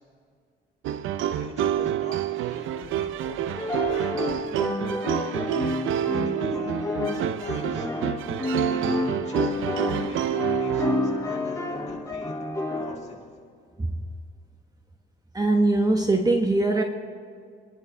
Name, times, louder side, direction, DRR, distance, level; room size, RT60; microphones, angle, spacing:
sound 1, 0.8-11.3, right 11 dB, 85° right, 0.6 m, -28 dB
voice 1, 1.2-4.5 6.0-6.8 7.1-7.9 8.7-13.2, left 3 dB, 35° left, -3 dB, 4.8 m, -44 dB
sound 2, 3.5-13.0, left 2 dB, 15° left, 2.7 m, -29 dB
voice 2, 15.3-16.8, right 2 dB, 20° right, 4 dB, 1.2 m, -21 dB
28.0 x 11.0 x 3.4 m, 2.2 s
cardioid pair, 90°, 20 cm